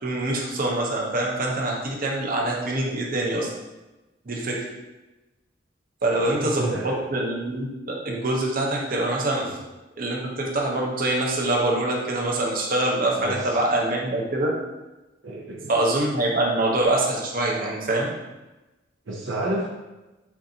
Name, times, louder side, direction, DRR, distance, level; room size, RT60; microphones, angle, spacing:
voice 1, 0.0-3.5 4.3-4.7 6.0-9.4 10.0-14.5 15.7-18.1, right 2 dB, 50° right, -2 dB, 0.9 m, -24 dB
voice 2, 6.1-7.0 9.4-9.5 13.2-13.6 15.2-15.7 19.1-19.7, right 1 dB, 75° right, -3 dB, 0.7 m, -30 dB
7.1 x 2.6 x 2.8 m, 1.1 s
head